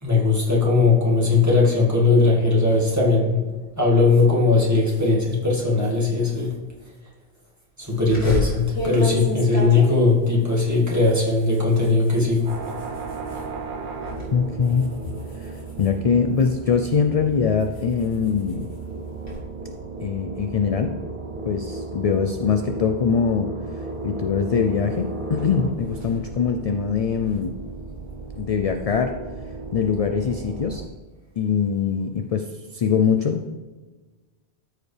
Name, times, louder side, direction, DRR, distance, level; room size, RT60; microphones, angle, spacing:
voice 1, 0.0-3.4 3.8-6.5 7.8-12.5, left 3 dB, 15° right, -5 dB, 2.0 m, -19 dB
sound 1, 8.1-13.5 13.9-14.3 14.6-16.7 17.2-19.4, left 1 dB, 75° left, 2.1 m, -32 dB
sound 2, 12.5-30.9, right 3 dB, 55° right, 0.8 m, -35 dB
voice 2, 14.3-14.9 15.4-18.7 20.0-20.9 21.5-23.5 23.8-27.5 28.4-29.1 29.7-30.8 31.4-33.5, left 6 dB, 55° left, 6 dB, 0.4 m, -23 dB
13.5 x 4.8 x 3.3 m, 1.3 s
omnidirectional pair, 1.1 m